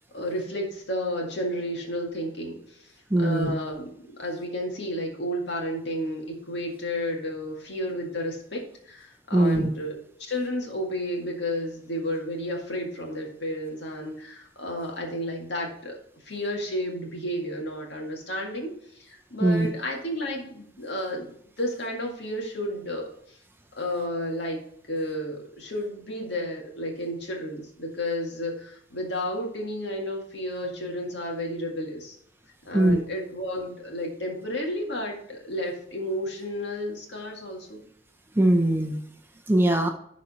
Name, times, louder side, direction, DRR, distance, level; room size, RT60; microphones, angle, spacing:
voice 1, 0.1-10.0 10.3-16.0 16.2-23.4 23.7-24.6 24.9-32.2 32.6-37.9, equal, 65° left, 0 dB, 1.9 m, -32 dB
voice 2, 3.1-3.5 9.3-9.7 19.4-19.7 32.7-33.0 38.4-39.0 39.5-39.9, right 1 dB, 10° right, 4 dB, 0.6 m, -21 dB
11.5 x 4.1 x 4.2 m, 0.69 s
head